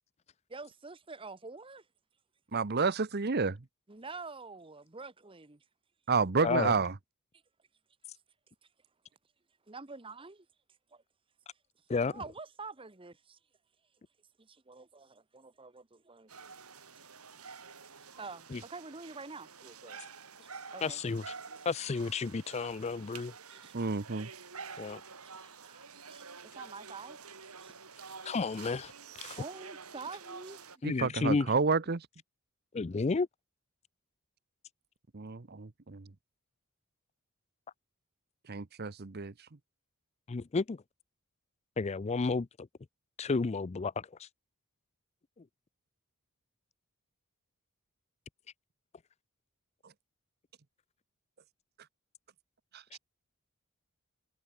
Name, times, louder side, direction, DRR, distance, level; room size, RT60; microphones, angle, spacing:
voice 1, 0.5-1.8 3.9-5.6 9.7-10.5 10.9-11.0 12.0-13.4 14.4-16.3 18.2-20.0 20.4-21.0 23.2-23.7 24.7-25.0 25.3-27.2 27.6-27.8 28.1-28.3 29.3-30.6, right 4 dB, 25° right, 1.1 m, -47 dB
voice 2, 2.5-3.6 6.1-6.9 23.7-24.3 30.8-32.1 35.1-36.1 38.5-39.3 52.7-53.0, right 4 dB, 45° right, 0.9 m, -30 dB
sound 1, 16.3-30.8, right 5 dB, 90° right, 5.7 m, -49 dB
voice 3, 20.8-21.2 21.7-23.3 24.8-25.0 28.2-28.9 29.2-29.4 30.8-31.5 32.7-33.3 40.3-40.8 41.8-42.5 43.2-44.3 52.9-53.0, left 4 dB, 30° left, 0.4 m, -31 dB
head